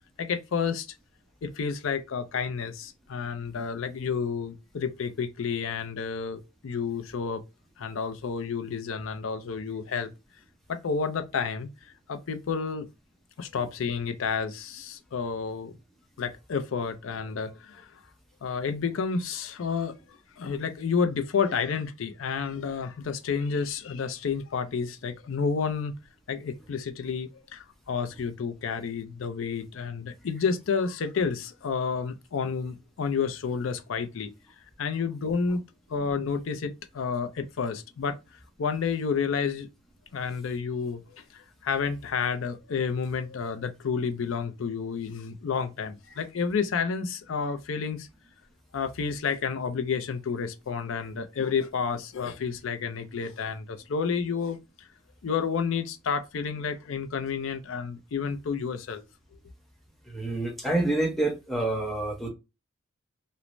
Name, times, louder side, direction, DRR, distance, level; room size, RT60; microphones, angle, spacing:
voice 1, 0.2-0.9 1.4-7.4 7.8-10.1 10.7-11.7 12.1-12.9 13.4-15.7 16.2-17.9 18.4-19.9 20.4-25.9 26.3-34.3 34.8-35.6 35.9-38.2 38.6-39.7 40.1-48.1 48.7-54.6 55.2-59.0, left 5 dB, 65° left, 0.4 m, -30 dB
voice 2, 60.1-62.3, right 2 dB, ahead, 0.6 m, -28 dB
3.1 x 2.0 x 2.5 m
head